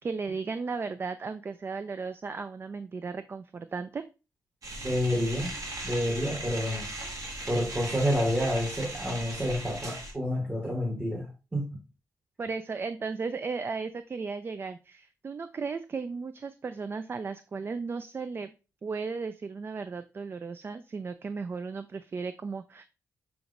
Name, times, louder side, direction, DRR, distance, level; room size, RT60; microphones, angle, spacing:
voice 1, 0.0-4.0 7.4-7.6 12.4-18.5 18.8-22.8, right 4 dB, 35° right, 11 dB, 0.3 m, -35 dB
sound 1, 4.6-10.1, right 1 dB, 60° right, 1.4 m, -38 dB
voice 2, 4.8-5.5 5.8-6.9 7.5-11.7, equal, 20° right, 0 dB, 1.0 m, -29 dB
6.9 x 3.0 x 2.5 m, 0.31 s
cardioid pair, 75°, 6 cm